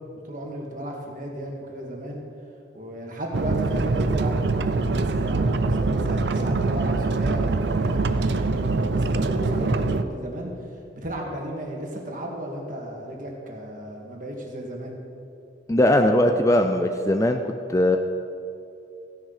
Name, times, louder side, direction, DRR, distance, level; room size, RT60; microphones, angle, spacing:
voice 1, 0.2-2.2 2.7-10.5 11.0-15.0, right 1 dB, 45° right, -1 dB, 1.9 m, -34 dB
sound 1, 3.3-10.0, right 3 dB, 60° right, 0.5 m, -24 dB
voice 2, 15.7-17.4 17.7-18.0, left 1 dB, 15° left, 5 dB, 0.4 m, -19 dB
15.5 x 10.0 x 4.1 m, 2.7 s
head